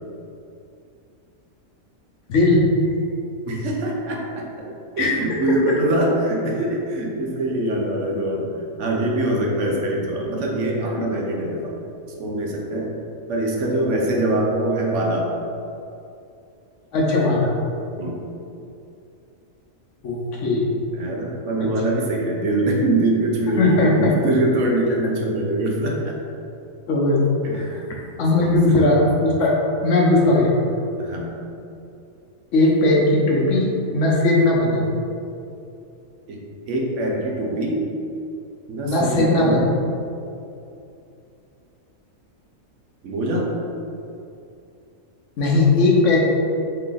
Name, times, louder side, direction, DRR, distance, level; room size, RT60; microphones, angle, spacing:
voice 1, 2.3-2.7 5.0-5.1 5.5-5.6 10.9-11.0 16.9-17.5 20.0-20.7 21.6-21.7 23.6-24.1 26.9-27.3 27.5-27.8 28.2-29.6 29.8-30.6 32.5-34.9 38.8-39.6 45.4-46.2, left 2 dB, 65° left, -2 dB, 1.0 m, -18 dB
voice 2, 3.5-11.7 12.2-12.9 13.3-15.3 18.0-18.2 20.9-26.2 27.4-27.6 28.3-28.5 30.1-30.3 31.0-31.3 36.3-37.9 38.7-39.6 43.0-43.5, right 1 dB, 65° right, -1 dB, 0.9 m, -23 dB
3.6 x 3.3 x 3.8 m, 2.6 s
omnidirectional pair, 1.5 m